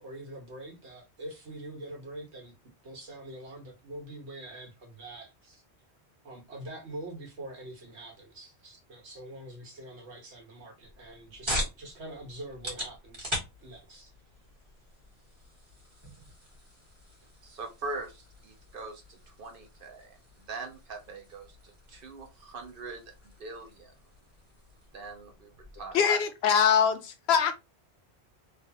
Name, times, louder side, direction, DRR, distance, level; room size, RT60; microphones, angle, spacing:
voice 1, 0.0-2.5 2.8-5.6 6.2-13.3 13.6-14.1, right 1 dB, 80° right, 1.4 m, -44 dB
sound 1, 10.8-26.0, equal, 25° right, 1.3 m, -42 dB
voice 2, 17.4-20.2 20.5-23.9 24.9-25.5 25.8-26.0, right 3 dB, 55° right, 0.9 m, -42 dB
voice 3, 25.9-27.5, left 7 dB, 70° left, 0.8 m, -23 dB
3.1 x 2.3 x 2.8 m
omnidirectional pair, 1.1 m